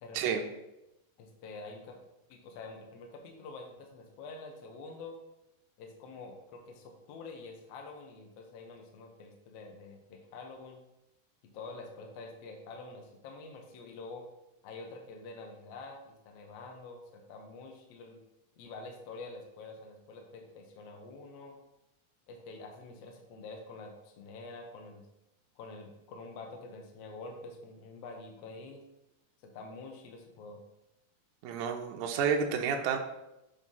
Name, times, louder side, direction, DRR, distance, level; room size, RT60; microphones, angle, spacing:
voice 1, 0.0-0.4 1.2-2.0 2.3-5.2 5.8-10.8 11.4-14.2 14.6-18.2 18.6-21.6 22.3-25.0 25.6-28.8 29.4-30.6, left 3 dB, 75° left, 2 dB, 1.5 m, -47 dB
voice 2, 31.4-33.0, right 6 dB, 80° right, 3 dB, 1.8 m, -30 dB
7.9 x 2.8 x 5.4 m, 0.91 s
omnidirectional pair, 4.2 m